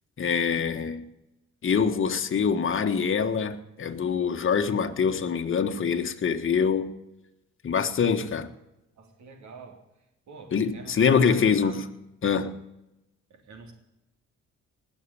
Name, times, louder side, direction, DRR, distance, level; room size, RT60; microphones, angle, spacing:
voice 1, 0.2-1.0 1.6-6.9 7.6-8.5 10.5-11.8 12.2-12.6, left 6 dB, 45° left, 1.5 m, -24 dB
voice 2, 8.9-9.8 10.3-11.8 13.3-13.7, right 4 dB, 70° right, 3.5 m, -46 dB
20.0 x 6.7 x 8.8 m
cardioid pair, 90°, 30 cm